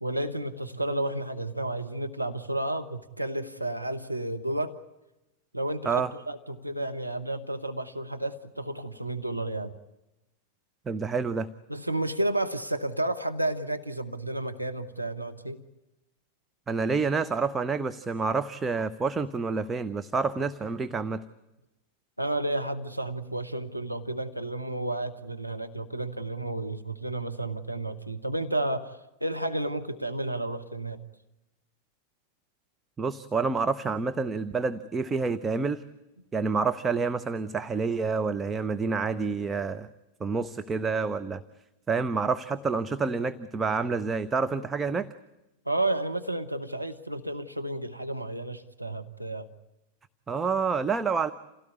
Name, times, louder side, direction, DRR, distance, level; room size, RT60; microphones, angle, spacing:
voice 1, 0.0-4.8 5.5-9.7 11.7-15.6 22.2-31.0 45.7-49.5, right 1 dB, 90° right, 6 dB, 1.1 m, -31 dB
voice 2, 10.9-11.5 16.7-21.2 33.0-35.8 36.3-39.9 40.2-41.4 41.9-45.1 50.3-51.3, right 4 dB, 15° right, 9 dB, 0.8 m, -28 dB
28.0 x 17.0 x 9.5 m, 0.97 s
figure-of-eight pair, 90°, 0 cm